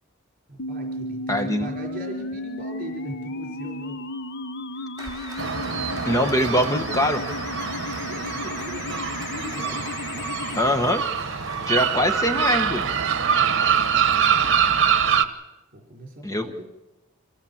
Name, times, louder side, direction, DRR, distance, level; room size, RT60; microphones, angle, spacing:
voice 1, 0.5-3.9 4.7-4.9 7.9-9.8 14.0-14.5 15.7-16.6, right 1 dB, 45° right, 0 dB, 4.8 m, -39 dB
sound 1, 0.6-10.6, left 2 dB, 55° left, 0.9 m, -34 dB
voice 2, 1.3-1.7 6.1-7.2 10.5-11.0 11.7-12.8 16.2-16.6, equal, 15° left, 7 dB, 1.1 m, -23 dB
Applause, 5.0-15.0, right 1 dB, 20° right, 4.2 m, -41 dB
sound 2, 5.4-15.2, right 7 dB, 60° right, 1.2 m, -24 dB
26.0 x 17.0 x 7.2 m, 1.0 s
head